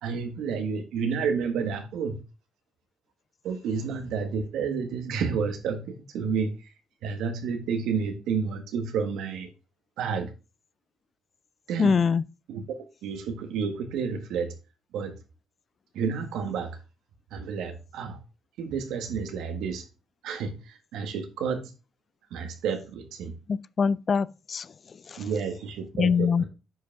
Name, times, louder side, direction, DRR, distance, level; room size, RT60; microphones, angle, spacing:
voice 1, 0.0-2.2 3.4-6.5 7.0-9.5 10.0-10.3 11.7-12.0 12.5-14.5 14.9-15.1 15.9-16.8 17.3-18.2 18.6-19.8 20.2-21.7 22.3-23.3 25.2-26.4, right 6 dB, 85° right, 1.6 m, -30 dB
voice 2, 11.8-12.2 23.5-24.7 25.1-25.2 25.9-26.4, left 6 dB, 45° left, 0.4 m, -24 dB
9.9 x 5.2 x 3.5 m
cardioid pair, 90°, 0 cm